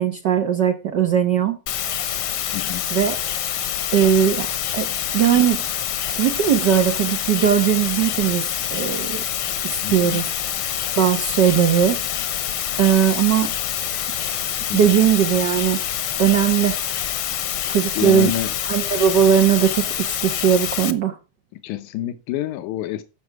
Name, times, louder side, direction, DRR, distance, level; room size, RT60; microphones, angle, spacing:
voice 1, 0.0-1.6 2.9-3.2 3.9-4.5 4.7-5.6 6.2-8.4 8.7-9.2 9.6-10.2 11.0-12.0 12.8-13.5 14.7-15.8 16.2-16.8 17.7-18.3 18.7-21.2, right 9 dB, 80° right, 0.9 m, -19 dB
sound 1, 1.7-20.9, left 10 dB, 65° left, 1.4 m, -26 dB
voice 2, 2.5-2.8 9.8-10.3 14.7-15.0 17.5-17.7 18.0-18.5 21.6-23.0, left 13 dB, 90° left, 2.3 m, -28 dB
15.0 x 6.1 x 4.7 m
omnidirectional pair, 3.4 m